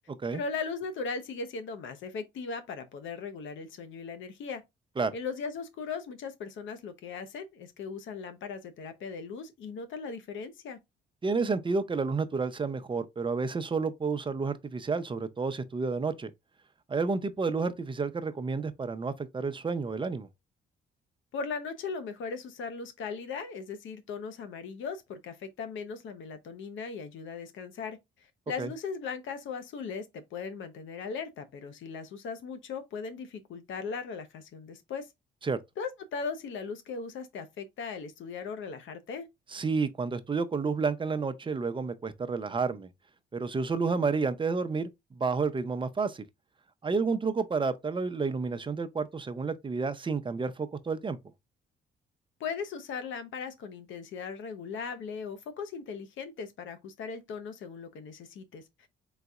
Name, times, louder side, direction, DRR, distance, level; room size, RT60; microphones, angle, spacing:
voice 1, 0.3-4.6 5.1-10.8 21.3-28.0 28.5-35.1 35.8-39.3 52.4-58.9, left 5 dB, 75° left, 0.9 m, -38 dB
voice 2, 11.2-16.3 16.9-20.3 28.6-28.7 35.4-35.6 39.5-42.9 43.3-44.9 45.2-46.2 46.8-51.2, right 4 dB, 25° right, 0.6 m, -30 dB
4.0 x 3.9 x 2.4 m
cardioid pair, 90°, 20 cm